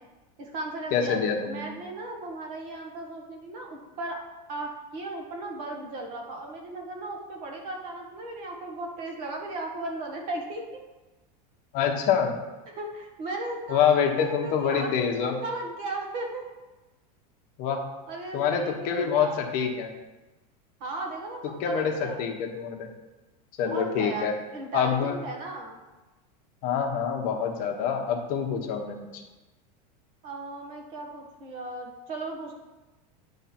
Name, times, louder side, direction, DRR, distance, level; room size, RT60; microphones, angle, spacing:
voice 1, 0.4-1.2 1.5-4.2 4.5-10.6 12.7-14.9 15.2-16.4 18.1-19.4 20.8-22.2 23.6-25.8 30.2-32.7, right 2 dB, 40° right, 1 dB, 1.4 m, -36 dB
voice 2, 0.9-1.7 11.7-12.4 13.7-15.4 17.6-17.8 18.3-19.9 21.6-22.9 23.6-24.3 24.7-25.2 26.6-29.2, left 7 dB, 40° left, 3 dB, 1.0 m, -26 dB
9.8 x 3.3 x 5.8 m, 1.1 s
supercardioid pair, 160°, 21 cm